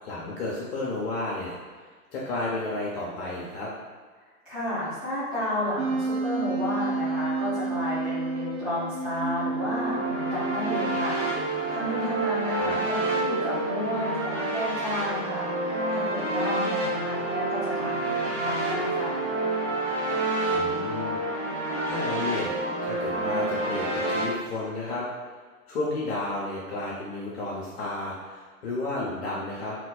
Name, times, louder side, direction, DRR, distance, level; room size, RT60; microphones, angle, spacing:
voice 1, 0.0-3.7 12.5-12.7 20.5-21.2 21.8-22.6 22.8-25.1 25.7-29.8, left 2 dB, 40° left, -5 dB, 0.8 m, -32 dB
voice 2, 4.4-19.2, left 1 dB, ahead, -17 dB, 0.4 m, -32 dB
Wind instrument woodwind instrument, 5.8-11.4, right 3 dB, 65° right, 0.8 m, -30 dB
sound 1, 9.5-24.2, right 2 dB, 45° right, 1.3 m, -28 dB
3.0 x 2.4 x 3.9 m, 1.5 s
figure-of-eight pair, 115°, 45 cm